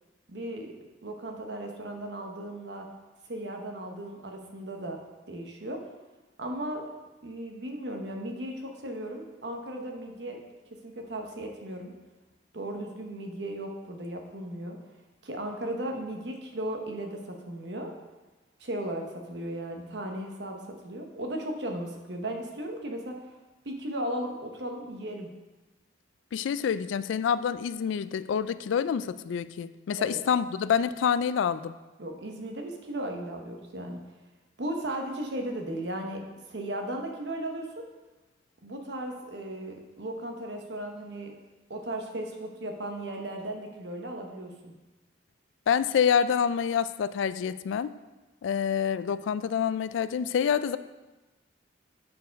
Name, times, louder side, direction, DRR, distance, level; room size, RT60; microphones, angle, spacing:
voice 1, 0.3-0.7 1.0-2.9 3.3-5.0 5.3-5.8 6.4-6.8 7.2-10.4 10.8-11.9 12.5-14.8 15.2-17.9 18.6-23.3 23.6-25.3 30.0-30.2 32.0-34.0 34.6-36.2 36.5-37.8 38.6-41.3 41.7-44.7, right 1 dB, 70° right, 2 dB, 1.0 m, -36 dB
voice 2, 26.3-31.7 45.7-47.9 48.4-50.8, left 7 dB, 90° left, 15 dB, 0.3 m, -27 dB
6.9 x 4.5 x 5.2 m, 1.1 s
head